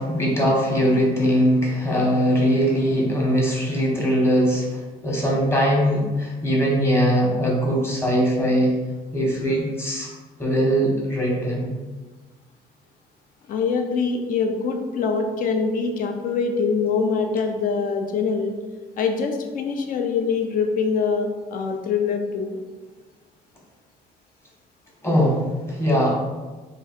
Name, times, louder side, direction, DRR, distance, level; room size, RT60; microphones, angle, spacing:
voice 1, 0.0-8.7 9.1-10.1 10.4-11.7 25.0-26.1, equal, 15° left, -2 dB, 1.0 m, -21 dB
voice 2, 13.5-18.5 19.0-22.6, left 5 dB, 55° left, 4 dB, 0.6 m, -24 dB
3.0 x 2.4 x 4.3 m, 1.3 s
cardioid pair, 110°, 17 cm